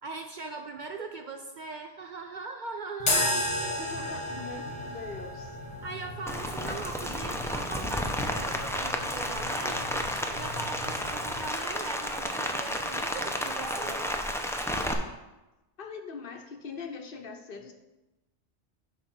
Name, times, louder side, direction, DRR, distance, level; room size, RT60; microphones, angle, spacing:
voice 1, 0.0-3.5 5.8-14.1, right 4 dB, 55° right, 6 dB, 0.6 m, -40 dB
sound 1, 3.0-11.5, left 1 dB, 35° left, 1.1 m, -35 dB
voice 2, 3.8-5.6 15.8-17.7, left 5 dB, 55° left, 5 dB, 0.9 m, -42 dB
Rain, 6.3-14.9, equal, 5° left, 0.4 m, -32 dB
10.5 x 3.5 x 6.0 m, 1.0 s
omnidirectional pair, 1.2 m